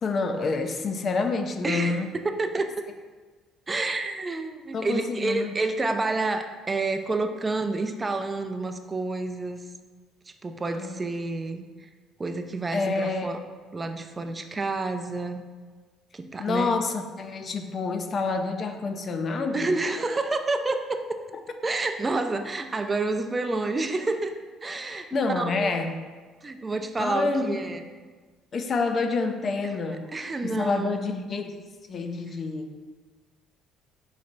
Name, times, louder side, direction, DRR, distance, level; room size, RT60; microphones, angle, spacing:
voice 1, 0.0-2.1 4.7-5.6 10.7-11.0 12.7-13.3 16.4-19.7 25.1-26.0 27.0-27.6 28.5-30.1 30.4-31.6 31.9-32.8, left 4 dB, 45° left, 6 dB, 0.4 m, -28 dB
voice 2, 1.6-2.7 3.7-9.6 10.3-11.9 12.2-13.4 13.7-15.4 16.1-16.7 19.5-20.8 21.6-24.3 24.6-25.8 26.4-27.9 30.1-30.9, right 3 dB, 25° right, 7 dB, 0.4 m, -29 dB
4.1 x 3.2 x 3.9 m, 1.4 s
supercardioid pair, 75°, 0 cm